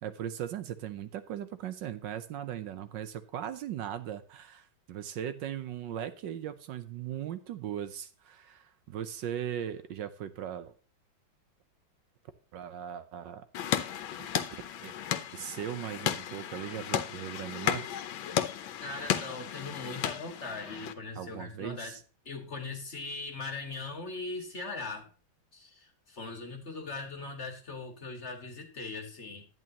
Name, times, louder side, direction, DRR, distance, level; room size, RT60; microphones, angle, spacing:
voice 1, 0.0-10.7 12.5-13.5 14.8-14.9 15.3-18.0 21.2-22.0, right 10 dB, 75° right, 12 dB, 1.4 m, -38 dB
sound 1, 13.5-20.9, left 10 dB, 85° left, 1.6 m, -34 dB
voice 2, 18.8-22.0 22.3-25.1 25.5-29.5, left 3 dB, 35° left, 4 dB, 1.9 m, -40 dB
11.0 x 9.1 x 2.9 m, 0.38 s
omnidirectional pair, 2.1 m